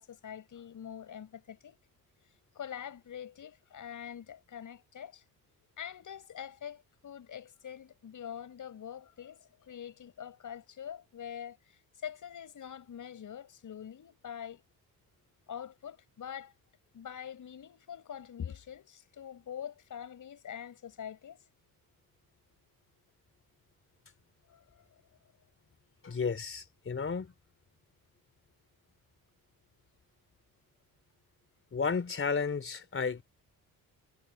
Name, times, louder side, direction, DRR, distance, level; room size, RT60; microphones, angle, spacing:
voice 1, 0.0-1.8 2.5-5.2 5.8-14.6 15.5-16.5 16.9-21.4 24.5-24.8, left 9 dB, 55° left, 6.3 m, -44 dB
voice 2, 26.0-27.3 31.7-33.2, left 5 dB, 35° left, 3.7 m, -32 dB
cardioid pair, 85°, 37 cm